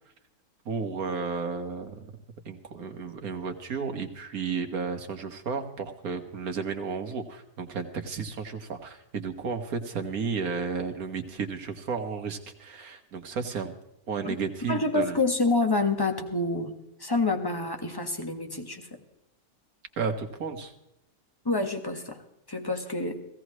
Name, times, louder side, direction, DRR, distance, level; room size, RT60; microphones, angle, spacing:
voice 1, 0.7-2.1 2.5-13.7 14.1-15.2 20.0-20.7, right 5 dB, 70° right, 6 dB, 1.9 m, -33 dB
voice 2, 14.7-16.7 17.0-19.0 21.4-22.2 22.5-23.3, left 2 dB, 15° left, 5 dB, 1.3 m, -27 dB
17.0 x 16.5 x 3.1 m, 0.89 s
omnidirectional pair, 1.6 m